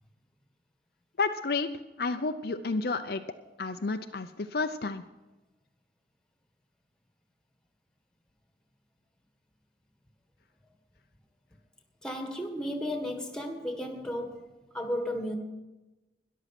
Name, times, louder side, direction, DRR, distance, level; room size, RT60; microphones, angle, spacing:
voice 1, 1.2-1.7 2.0-3.2 3.6-5.0, left 3 dB, 55° left, 0.6 m, -30 dB
voice 2, 12.0-14.5 14.7-15.4, equal, 5° left, 1.6 m, -34 dB
13.0 x 11.0 x 6.0 m
head